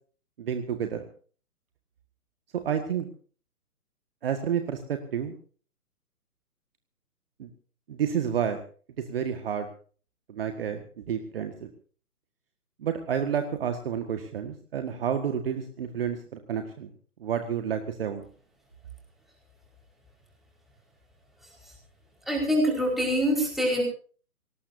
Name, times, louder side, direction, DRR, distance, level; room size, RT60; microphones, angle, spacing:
voice 1, 0.4-1.1 2.5-3.1 4.2-5.3 7.4-7.5 7.9-8.6 9.1-9.7 10.3-11.7 12.8-16.9 17.2-18.3, right 8 dB, 40° right, 7 dB, 1.8 m, -30 dB
voice 2, 22.3-23.8, equal, ahead, -1 dB, 4.9 m, -24 dB
24.0 x 19.0 x 2.7 m, 0.41 s
figure-of-eight pair, 135°, 46 cm